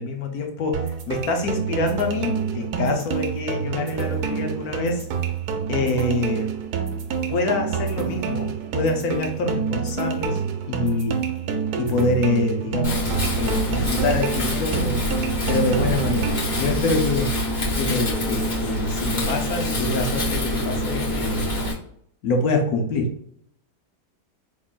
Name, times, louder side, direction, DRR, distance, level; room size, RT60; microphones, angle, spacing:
voice 1, 0.0-5.1 5.7-6.5 7.3-10.4 10.7-11.2 11.8-15.1 15.5-17.4 17.8-21.5 22.2-23.1, left 2 dB, 65° left, 3 dB, 1.2 m, -25 dB
sound 1, 0.7-16.7, right 6 dB, 70° right, 1.1 m, -28 dB
Wind, 12.8-21.7, left 1 dB, 30° left, 1.2 m, -25 dB
4.7 x 3.7 x 2.4 m, 0.67 s
omnidirectional pair, 1.8 m